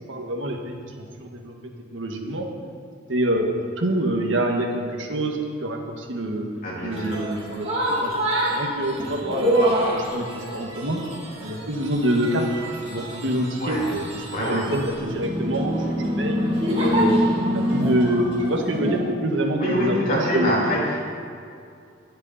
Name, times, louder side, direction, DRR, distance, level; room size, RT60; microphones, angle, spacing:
voice 1, 0.1-0.8 1.2-1.5 1.9-2.5 3.1-6.5 6.8-8.1 8.5-9.6 9.9-11.0 11.4-12.5 12.9-15.8 16.2-16.4 16.8-17.2 17.5-20.7, right 1 dB, 75° right, 2 dB, 1.7 m, -26 dB
voice 2, 6.6-7.2 13.6-13.8 14.3-14.6 19.6-21.0, equal, 45° left, -5 dB, 3.6 m, -25 dB
sound 1, 6.9-19.0, equal, 30° right, 2.7 m, -26 dB
21.5 x 8.4 x 4.2 m, 2.4 s
head